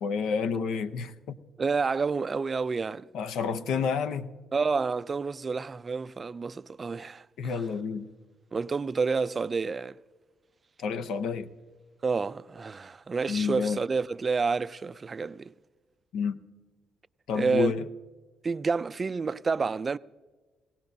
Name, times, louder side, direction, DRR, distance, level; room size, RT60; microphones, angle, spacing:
voice 1, 0.0-1.4 3.1-4.3 7.4-8.1 10.8-11.5 13.3-13.8 16.1-16.4 17.3-17.9, left 6 dB, 80° left, 0.7 m, -29 dB
voice 2, 1.6-3.0 4.5-7.5 8.5-10.0 12.0-15.5 17.3-17.7 18.4-20.0, right 4 dB, 35° right, 0.3 m, -29 dB
18.5 x 18.0 x 2.7 m
cardioid pair, 90°, 0 cm